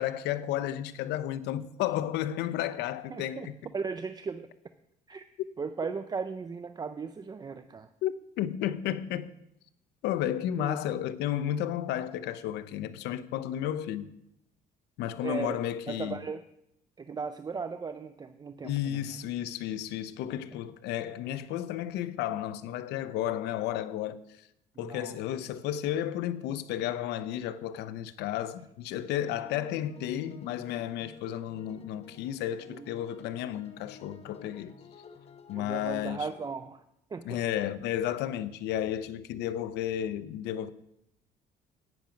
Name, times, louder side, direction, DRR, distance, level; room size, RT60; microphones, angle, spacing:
voice 1, 0.0-3.6 8.0-9.3 10.0-14.1 15.0-16.2 18.6-24.5 24.8-34.7 35.5-36.3 37.2-40.7, left 11 dB, 85° left, 0.6 m, -32 dB
voice 2, 3.1-3.5 3.7-4.5 5.1-5.3 5.6-7.9 10.6-10.8 15.2-16.4 17.0-19.2 24.8-25.2 32.7-32.9 35.5-36.8 37.1-37.4, right 5 dB, 25° right, 0.4 m, -37 dB
sound 1, 29.2-36.5, left 5 dB, 35° left, 1.0 m, -51 dB
11.0 x 9.0 x 5.0 m
cardioid pair, 110°, 17 cm